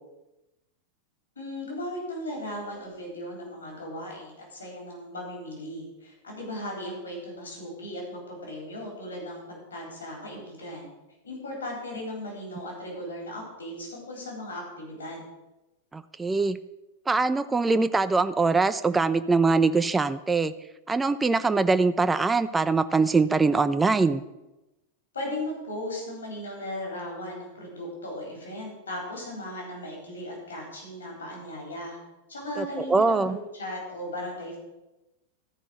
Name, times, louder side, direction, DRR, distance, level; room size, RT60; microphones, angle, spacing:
voice 1, 1.4-10.9 11.2-15.2 25.1-32.0 32.3-34.6, left 1 dB, 75° left, -2 dB, 3.7 m, -37 dB
voice 2, 15.9-16.6 17.1-20.5 20.9-24.2 32.6-33.4, right 3 dB, 10° right, 11 dB, 0.4 m, -23 dB
13.5 x 5.1 x 6.4 m, 0.98 s
figure-of-eight pair, 90°, 0 cm